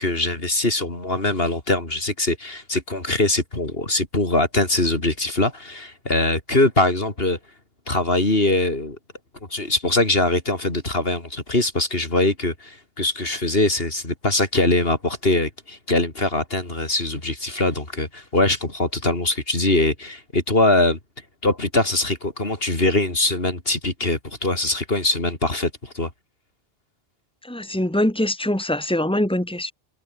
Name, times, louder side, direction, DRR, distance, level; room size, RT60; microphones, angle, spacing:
voice 1, 0.0-7.4 7.9-9.0 9.5-21.0 21.4-26.1, left 2 dB, 65° left, 4.2 m, -22 dB
voice 2, 27.5-29.7, left 1 dB, 5° left, 3.0 m, -23 dB
omnidirectional pair, 1.1 m